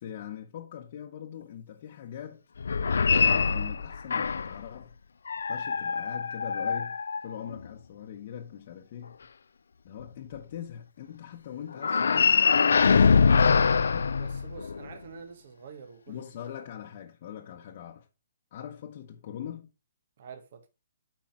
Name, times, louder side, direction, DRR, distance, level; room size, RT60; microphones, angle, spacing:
voice 1, 0.0-2.4 3.2-4.9 5.5-7.0 7.2-9.2 9.8-14.1 16.1-18.1 18.5-19.7, left 9 dB, 40° left, 1.0 m, -42 dB
sound 1, 2.6-4.6 5.3-7.7 11.8-14.9, left 5 dB, 80° left, 0.4 m, -24 dB
voice 2, 14.2-16.2 20.2-20.6, right 6 dB, 50° right, 1.5 m, -47 dB
8.7 x 4.9 x 4.5 m
hypercardioid pair, 155°, 0 cm